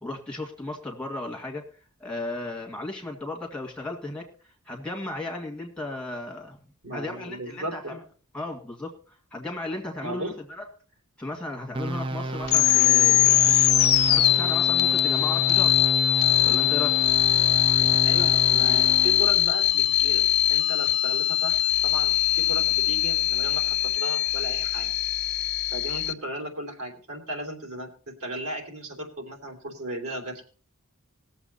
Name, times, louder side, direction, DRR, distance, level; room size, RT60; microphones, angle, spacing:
voice 1, 0.0-1.7 2.0-4.3 4.7-6.6 6.9-7.9 8.3-10.6 11.2-13.7 14.0-15.7 16.4-17.0, left 2 dB, 5° left, -1 dB, 2.1 m, -35 dB
voice 2, 6.8-8.0 10.0-10.4 18.0-24.9 25.7-30.4, right 1 dB, 85° right, 2 dB, 3.2 m, -36 dB
sound 1, 11.7-19.3, right 1 dB, 25° right, 0.4 m, -32 dB
sound 2, 12.4-26.1, left 12 dB, 50° left, 0.8 m, -21 dB
20.0 x 7.3 x 4.2 m, 0.41 s
head